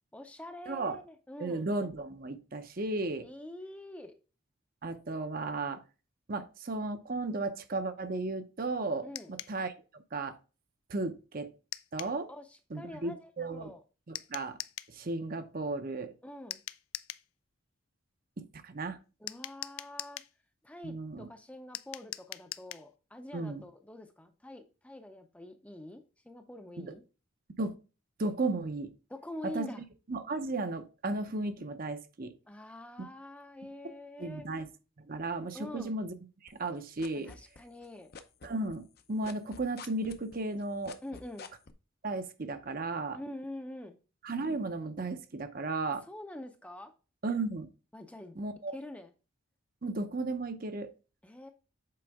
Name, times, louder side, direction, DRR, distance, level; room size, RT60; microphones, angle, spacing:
voice 1, 0.1-1.7 3.2-4.1 9.0-9.3 12.3-13.8 16.2-16.6 19.2-20.2 20.6-27.0 29.1-29.8 32.5-34.5 35.5-35.9 37.2-38.1 41.0-41.5 43.1-44.0 45.8-46.9 47.9-48.4 48.7-49.1 51.2-51.5, left 1 dB, 5° left, 0.5 m, -45 dB
voice 2, 0.7-1.0 1.4-3.3 4.8-5.8 6.3-10.4 10.9-11.5 11.9-12.3 12.7-13.7 14.1-14.6 14.9-16.1 18.4-19.0 20.8-21.3 23.3-23.6 26.8-26.9 27.6-27.7 28.2-28.9 29.4-29.7 30.1-32.3 34.2-34.7 35.0-36.1 36.4-37.3 38.4-41.0 42.0-43.2 44.2-46.0 47.2-47.7 48.4-48.7 49.8-50.9, right 2 dB, 45° right, 0.7 m, -35 dB
sound 1, 9.1-9.6 11.7-12.2 14.1-14.9 16.5-17.3 19.3-20.3 21.7-22.9, left 15 dB, 85° left, 0.4 m, -42 dB
sound 2, 36.5-37.9 38.1-41.7, left 5 dB, 50° left, 0.6 m, -47 dB
7.7 x 4.3 x 3.5 m
head